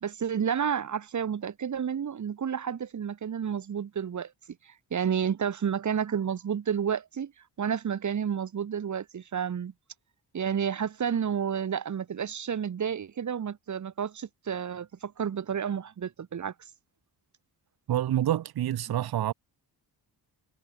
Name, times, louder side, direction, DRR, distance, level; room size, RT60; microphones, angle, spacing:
voice 1, 0.0-4.3 4.9-7.3 7.6-9.7 10.3-16.5, right 8 dB, 45° right, 1.5 m, -30 dB
voice 2, 17.9-19.3, right 12 dB, 60° right, 1.0 m, -27 dB
wide cardioid pair, 135°, 41 cm